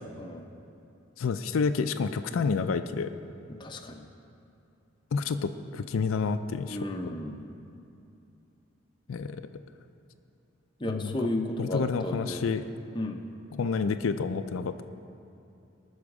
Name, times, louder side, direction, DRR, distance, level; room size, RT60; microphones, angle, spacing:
voice 1, 0.1-0.4 3.6-4.0 6.7-7.4 10.8-12.4 12.9-13.2, left 1 dB, 20° left, 3 dB, 0.6 m, -33 dB
voice 2, 1.2-3.1 5.1-6.8 7.0-7.1 9.1-9.4 10.9-11.2 11.6-12.6 13.5-14.8, left 5 dB, 80° left, 9 dB, 0.4 m, -29 dB
18.5 x 6.3 x 4.8 m, 2.7 s
head